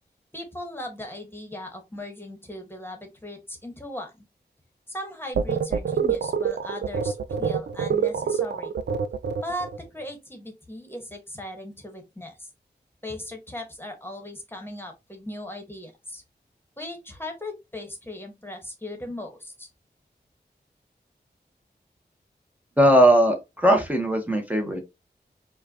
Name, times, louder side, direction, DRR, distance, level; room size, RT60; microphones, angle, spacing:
voice 1, 0.3-4.2 4.9-8.7 9.4-12.5 13.0-16.2 16.8-19.7, left 1 dB, 15° left, 1.2 m, -38 dB
sound 1, 5.4-9.8, right 6 dB, 80° right, 0.4 m, -26 dB
voice 2, 22.8-24.8, equal, 10° right, 0.9 m, -19 dB
4.7 x 2.3 x 2.8 m
wide cardioid pair, 70°, 18 cm